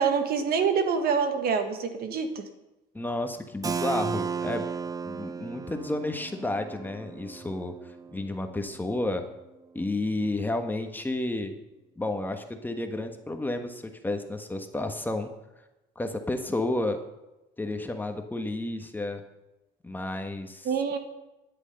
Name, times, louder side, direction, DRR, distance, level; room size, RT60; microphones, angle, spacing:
voice 1, 0.0-2.4 20.6-21.0, right 6 dB, 65° right, 7 dB, 1.7 m, -26 dB
voice 2, 2.9-4.6 5.0-7.7 8.1-9.2 9.7-11.6 12.0-15.3 15.9-17.0 17.6-19.2 19.8-20.7, left 2 dB, 10° left, 6 dB, 1.3 m, -31 dB
Keyboard (musical), 3.6-9.2, right 6 dB, 20° right, 0.5 m, -35 dB
13.0 x 10.0 x 5.3 m, 0.98 s
cardioid pair, 110°, 17 cm